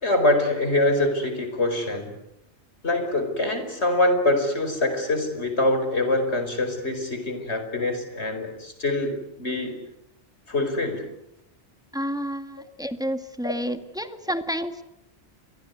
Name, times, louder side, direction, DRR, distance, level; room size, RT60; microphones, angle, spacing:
voice 1, 0.0-2.1 2.8-9.8 10.5-11.1 13.4-13.5, left 2 dB, 70° left, 8 dB, 5.3 m, -24 dB
voice 2, 11.9-14.8, equal, 5° right, 8 dB, 1.9 m, -30 dB
29.5 x 24.0 x 8.3 m, 0.83 s
omnidirectional pair, 1.2 m